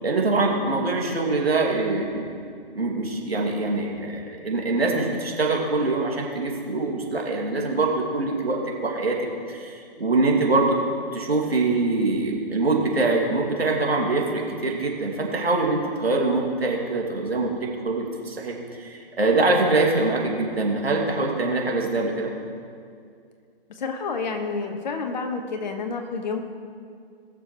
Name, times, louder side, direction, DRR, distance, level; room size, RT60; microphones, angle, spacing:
voice 1, 0.0-2.3 2.7-9.2 9.5-10.8 11.1-22.3, right 3 dB, 80° right, -1 dB, 2.3 m, -24 dB
voice 2, 23.7-26.4, left 4 dB, 45° left, 5 dB, 1.3 m, -29 dB
20.5 x 7.0 x 3.1 m, 2.2 s
figure-of-eight pair, 140°, 30 cm